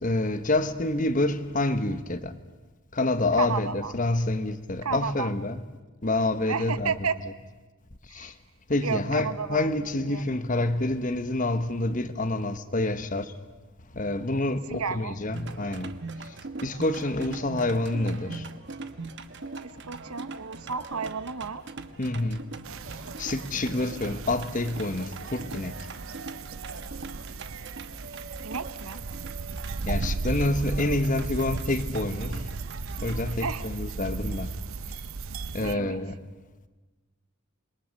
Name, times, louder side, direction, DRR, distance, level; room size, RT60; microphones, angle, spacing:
voice 1, 0.0-2.3 2.9-5.6 6.0-6.9 8.1-8.3 8.7-13.3 13.9-15.9 16.6-18.5 22.0-22.4 23.2-25.7 29.9-32.5 33.0-34.5 35.5-36.2, left 2 dB, 35° left, 1.1 m, -27 dB
voice 2, 3.4-3.9 4.8-5.3 6.5-7.2 8.1-8.3 8.8-9.7 10.1-10.2 14.7-15.2 19.6-21.6 28.4-29.0 33.4-33.6 35.6-36.0, right 5 dB, 90° right, 1.0 m, -32 dB
sound 1, 15.3-33.3, right 3 dB, 55° right, 1.1 m, -41 dB
sound 2, 22.6-35.7, right 3 dB, 70° right, 0.7 m, -36 dB
27.5 x 21.5 x 6.5 m
head